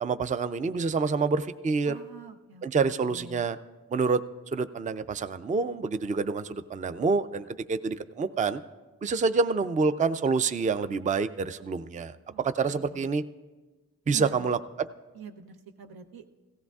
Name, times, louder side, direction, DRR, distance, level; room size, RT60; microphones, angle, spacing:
voice 1, 0.0-2.0 2.6-3.6 3.9-4.2 4.5-8.6 9.0-13.2 14.1-14.9, right 4 dB, 20° right, 12 dB, 0.4 m, -27 dB
voice 2, 1.8-2.7 3.1-3.4 12.3-13.1 14.1-14.5 15.1-16.2, right 5 dB, 85° right, 6 dB, 0.8 m, -45 dB
16.5 x 15.0 x 2.4 m, 1.3 s
cardioid pair, 55°, 36 cm